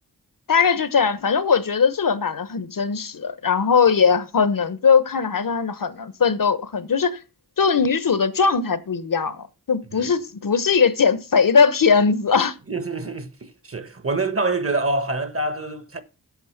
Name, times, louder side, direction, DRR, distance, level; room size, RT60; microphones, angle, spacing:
voice 1, 0.5-7.2 7.6-12.5, left 5 dB, 60° left, 1.1 m, -20 dB
voice 2, 12.7-16.0, right 2 dB, 35° right, 1.4 m, -26 dB
8.2 x 7.3 x 5.9 m
cardioid pair, 55°, 38 cm